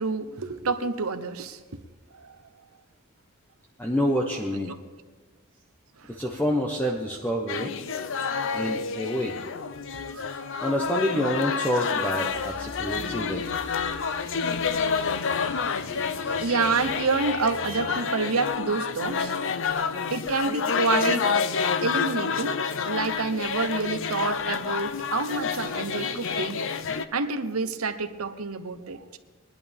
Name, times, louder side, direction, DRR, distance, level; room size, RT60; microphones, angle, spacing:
voice 1, 0.0-1.6 2.1-2.4 6.0-6.1 10.1-10.7 12.3-12.4 13.1-13.4 13.8-14.0 16.3-19.8 20.1-21.4 21.6-26.6 27.1-29.2, right 4 dB, 80° right, 0.9 m, -29 dB
voice 2, 3.8-4.7 6.1-7.7 8.5-9.3 10.6-13.5, equal, 10° left, 1.1 m, -27 dB
sound 1, 7.5-27.0, left 6 dB, 65° left, 0.7 m, -29 dB
sound 2, 12.3-17.9, left 1 dB, 80° left, 5.2 m, -46 dB
22.0 x 11.0 x 3.6 m
head